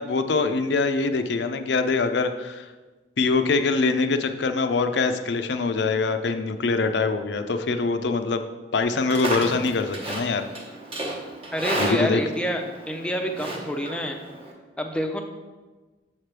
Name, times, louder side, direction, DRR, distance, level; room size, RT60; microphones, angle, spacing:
voice 1, 0.0-2.7 3.2-8.4 8.7-10.5 11.8-12.2, left 4 dB, 65° left, 8 dB, 0.5 m, -24 dB
Livestock farm animals working animals, 8.8-14.5, right 1 dB, 30° right, 1.0 m, -33 dB
voice 2, 11.5-14.2 14.8-15.2, equal, 5° left, 3 dB, 0.5 m, -28 dB
7.1 x 3.3 x 5.9 m, 1.2 s
head